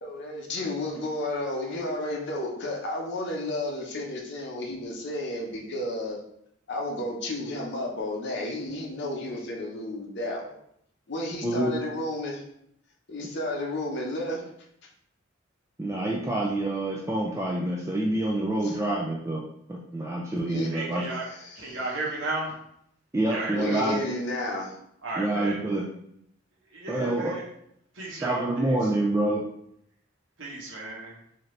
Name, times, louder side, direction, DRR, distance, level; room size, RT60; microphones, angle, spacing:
voice 1, 0.0-6.2 6.7-10.6 11.1-12.4 13.1-14.4 18.6-18.8 20.4-20.7 21.7-21.8 23.5-24.8, left 1 dB, 60° left, 0 dB, 0.8 m, -32 dB
voice 2, 11.4-11.7 15.8-19.4 19.7-21.0 23.1-24.0 25.2-25.8 26.9-27.3 28.2-29.4, right 1 dB, 15° right, -2 dB, 0.4 m, -27 dB
voice 3, 20.7-21.3 21.6-22.5 23.3-23.8 25.0-25.6 26.7-27.4 27.9-28.9 30.4-31.2, right 2 dB, 70° right, -4 dB, 1.1 m, -34 dB
3.8 x 2.7 x 3.2 m, 0.72 s
head